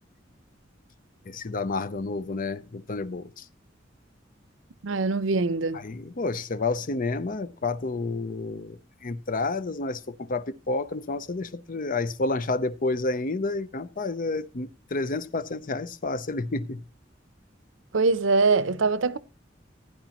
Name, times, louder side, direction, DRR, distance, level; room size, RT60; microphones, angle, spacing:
voice 1, 1.3-3.4 5.7-16.8, left 3 dB, 45° left, 0.7 m, -30 dB
voice 2, 4.8-5.8 17.9-19.2, right 3 dB, 85° right, 0.7 m, -23 dB
16.0 x 9.4 x 3.0 m
head